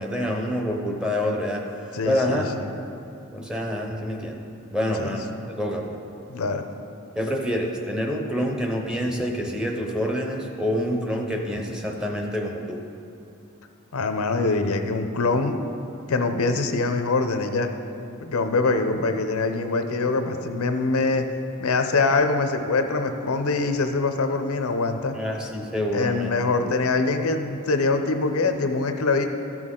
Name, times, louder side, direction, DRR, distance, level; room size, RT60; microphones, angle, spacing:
voice 1, 0.0-2.5 3.3-4.4 4.7-5.3 5.6-6.0 7.1-12.8 25.1-26.3, equal, 5° right, 1 dB, 0.7 m, -27 dB
voice 2, 1.9-2.7 5.0-5.1 6.3-6.7 13.9-15.6 16.1-17.7 18.2-21.2 21.6-25.1 25.9-29.3, left 3 dB, 85° left, 7 dB, 0.6 m, -24 dB
13.5 x 6.1 x 3.8 m, 2.7 s
head